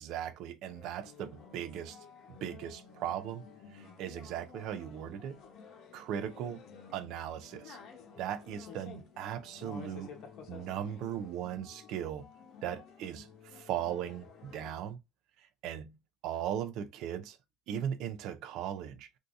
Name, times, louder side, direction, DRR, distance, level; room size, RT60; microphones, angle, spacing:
voice 1, 0.0-3.4 3.7-5.4 5.9-6.6 6.9-7.8 8.2-10.1 10.5-12.3 12.6-15.0 15.4-16.0 16.2-17.4 17.7-19.2, right 10 dB, 70° right, 0.5 m, -38 dB
sound 1, 0.7-14.7, left 6 dB, 65° left, 0.9 m, -52 dB
3.6 x 2.7 x 2.5 m
cardioid pair, 115°, 0 cm